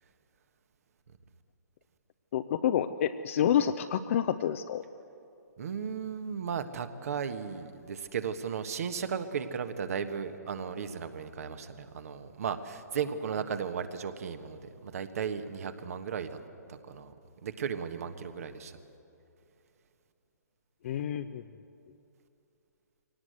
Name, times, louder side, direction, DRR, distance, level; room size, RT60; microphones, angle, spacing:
voice 1, 2.3-4.8 20.8-21.4, left 9 dB, 45° left, 8 dB, 0.6 m, -28 dB
voice 2, 5.6-16.4 16.7-17.1 17.4-18.8, right 7 dB, 55° right, 9 dB, 1.5 m, -35 dB
22.5 x 18.0 x 8.0 m, 2.7 s
figure-of-eight pair, 130°, 9 cm